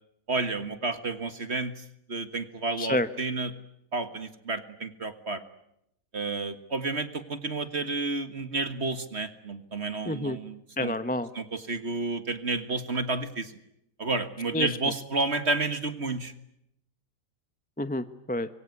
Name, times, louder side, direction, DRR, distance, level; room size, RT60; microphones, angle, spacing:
voice 1, 0.3-3.5 3.9-5.4 6.1-10.9 11.3-13.6 14.0-16.3, right 3 dB, 40° right, 10 dB, 1.8 m, -31 dB
voice 2, 2.8-3.1 10.1-10.4 10.8-11.3 14.5-14.8 17.8-18.5, left 1 dB, 10° left, 11 dB, 0.6 m, -29 dB
26.0 x 23.0 x 9.6 m, 0.78 s
omnidirectional pair, 1.8 m